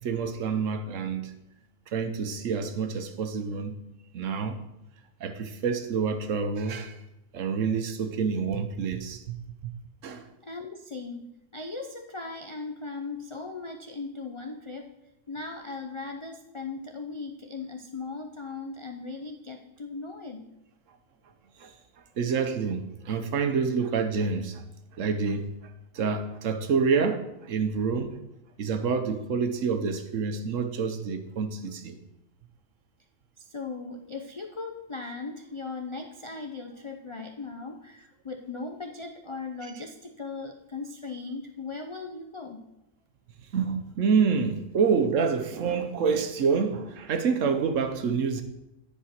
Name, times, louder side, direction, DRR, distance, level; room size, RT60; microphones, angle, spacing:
voice 1, 0.0-1.3 1.9-3.7 4.1-4.6 5.2-7.0 7.3-9.4 9.6-9.7 10.0-10.3 21.6-21.7 22.2-24.6 24.9-28.1 28.6-32.0 43.5-48.4, right 5 dB, 75° right, 8 dB, 1.2 m, -27 dB
voice 2, 10.4-14.9 15.3-20.5 33.4-42.7, left 4 dB, 55° left, 4 dB, 0.3 m, -38 dB
10.0 x 4.8 x 5.8 m, 0.90 s
omnidirectional pair, 1.4 m